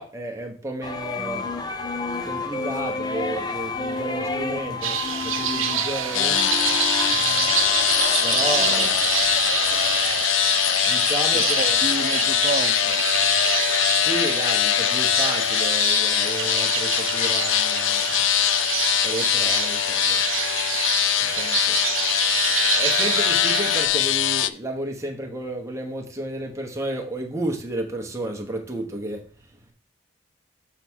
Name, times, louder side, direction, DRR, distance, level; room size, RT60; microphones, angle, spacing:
voice 1, 0.0-1.4 2.2-5.0 5.2-6.4 8.2-9.0 10.9-11.8 14.0-18.2 19.0-20.2 21.3-21.8 22.7-29.2, right 1 dB, 15° right, 2 dB, 1.0 m, -32 dB
sound 1, 0.8-10.3, left 3 dB, 20° left, 0.5 m, -31 dB
sound 2, 4.8-23.9, right 9 dB, 80° right, 0.8 m, -27 dB
sound 3, 6.1-24.5, left 12 dB, 70° left, 0.3 m, -22 dB
voice 2, 8.4-8.8 11.3-13.0, right 3 dB, 35° right, 10 dB, 0.5 m, -31 dB
6.9 x 3.5 x 6.2 m, 0.41 s
head